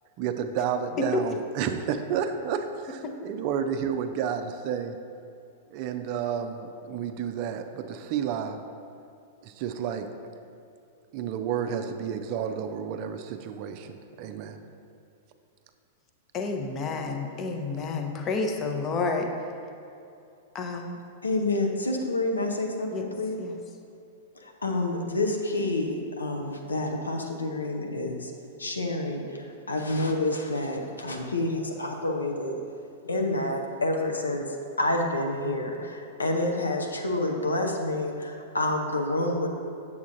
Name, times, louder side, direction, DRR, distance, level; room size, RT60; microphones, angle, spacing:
voice 1, 0.2-5.0 5.7-8.6 9.4-10.1 11.1-14.6 17.7-17.9, right 8 dB, 45° right, 8 dB, 0.4 m, -31 dB
voice 2, 16.3-19.3 20.5-21.0 22.9-23.0 23.4-23.6, left 4 dB, 30° left, 4 dB, 0.7 m, -30 dB
voice 3, 21.2-23.4 24.3-28.3 28.6-32.6 33.0-34.5 34.8-39.5, left 2 dB, 80° left, 2 dB, 0.7 m, -28 dB
8.2 x 7.0 x 2.6 m, 2.7 s
figure-of-eight pair, 100°, 0 cm